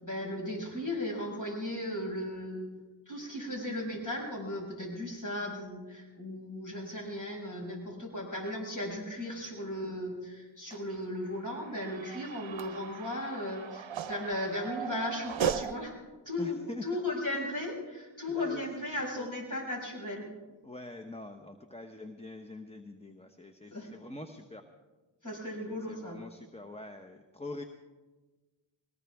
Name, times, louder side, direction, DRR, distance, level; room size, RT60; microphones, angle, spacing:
voice 1, 0.0-2.7 3.1-16.0 16.3-20.3 23.7-23.9 25.2-26.2, left 1 dB, 40° left, -1 dB, 5.9 m, -36 dB
sound 1, 10.7-15.7, right 8 dB, 75° right, 0.7 m, -37 dB
voice 2, 16.4-16.8 17.3-17.5 18.3-18.7 19.2-19.3 20.6-24.6 25.7-27.6, left 2 dB, 15° left, 5 dB, 0.9 m, -44 dB
20.5 x 19.0 x 3.5 m, 1.3 s
wide cardioid pair, 50°, 46 cm